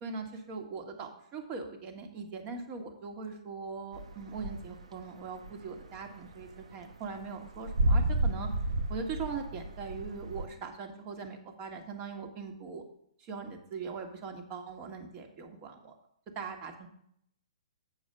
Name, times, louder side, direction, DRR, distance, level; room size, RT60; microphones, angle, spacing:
voice 1, 0.0-8.5 8.9-12.8 13.2-15.9 16.3-16.9, right 5 dB, 30° right, 5 dB, 1.6 m, -41 dB
sound 1, 3.9-5.0 5.2-10.5, right 1 dB, 80° right, 0.9 m, -31 dB
7.7 x 4.7 x 6.7 m, 0.71 s
hypercardioid pair, 135°, 3 cm